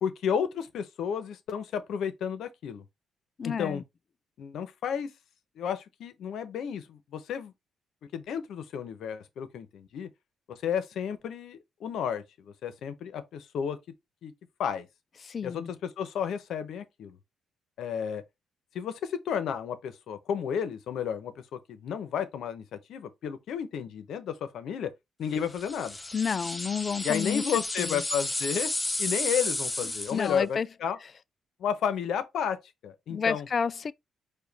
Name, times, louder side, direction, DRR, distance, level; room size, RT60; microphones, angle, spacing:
voice 1, 0.0-2.8 3.4-3.8 4.4-5.1 5.6-7.5 8.1-10.1 10.5-13.8 14.2-14.3 14.6-14.9 15.4-17.2 17.8-18.2 18.7-22.6 22.9-24.9 25.2-26.0 27.0-28.7 29.0-31.0 31.6-32.6 32.8-33.5, left 8 dB, 75° left, 0.9 m, -32 dB
voice 2, 3.4-3.8 15.2-15.7 26.1-27.4 27.8-28.0 30.1-30.7 33.1-33.9, left 6 dB, 45° left, 0.3 m, -30 dB
sound 1, 25.5-30.4, left 2 dB, 15° left, 0.8 m, -32 dB
5.0 x 2.4 x 4.1 m
cardioid pair, 90°, 0 cm